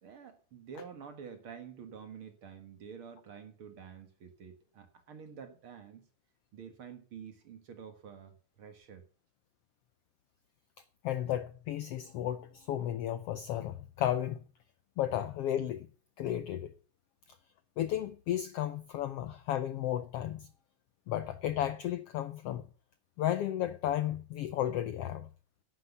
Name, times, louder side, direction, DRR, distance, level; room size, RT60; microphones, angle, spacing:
voice 1, 0.0-6.1 6.5-9.0, right 7 dB, 50° right, 2.0 m, -49 dB
voice 2, 11.0-14.4 15.0-15.9 16.2-16.7 17.3-17.4 17.8-20.5 21.1-22.6 23.2-25.3, left 11 dB, 85° left, 1.3 m, -33 dB
11.0 x 8.2 x 7.0 m
omnidirectional pair, 3.6 m